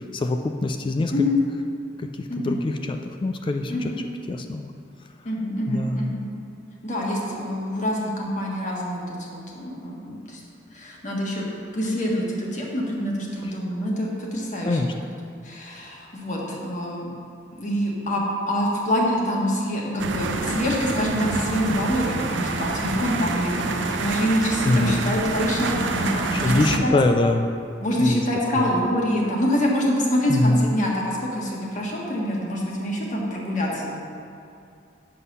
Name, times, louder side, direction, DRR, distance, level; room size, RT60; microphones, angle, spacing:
voice 1, 0.1-1.1 2.0-3.7 4.3-4.7 5.7-6.1 14.7-14.9 24.7-25.1 26.3-27.5 28.0-28.2 28.5-28.7 30.3-30.7, left 2 dB, 25° left, 5 dB, 0.3 m, -23 dB
voice 2, 5.2-6.3 6.8-10.4 10.7-11.4 11.7-14.8 15.4-17.1 17.5-26.9 27.8-34.0, equal, 45° left, -3 dB, 1.5 m, -26 dB
sound 1, 20.0-26.8, right 3 dB, 75° right, 0.6 m, -27 dB
7.9 x 5.6 x 5.5 m, 2.4 s
head